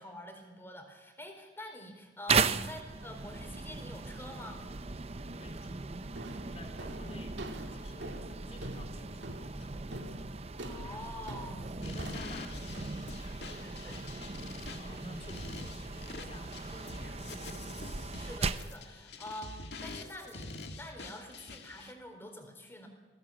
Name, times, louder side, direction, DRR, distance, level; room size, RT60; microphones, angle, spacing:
voice 1, 0.0-4.6 6.2-6.4 10.6-11.8 13.5-14.1 18.1-22.9, left 1 dB, 15° left, 4 dB, 4.0 m, -47 dB
sound 1, 2.3-18.8, right 4 dB, 35° right, 0.7 m, -37 dB
voice 2, 5.3-7.4 7.7-9.9 11.8-13.2 14.8-17.8, left 1 dB, 35° left, 4 dB, 3.2 m, -51 dB
sound 2, 5.3-5.7 6.2-14.1, right 1 dB, 75° right, 2.3 m, -46 dB
sound 3, 11.8-21.9, left 3 dB, 65° left, 1.9 m, -46 dB
21.0 x 17.0 x 8.7 m, 1.4 s
head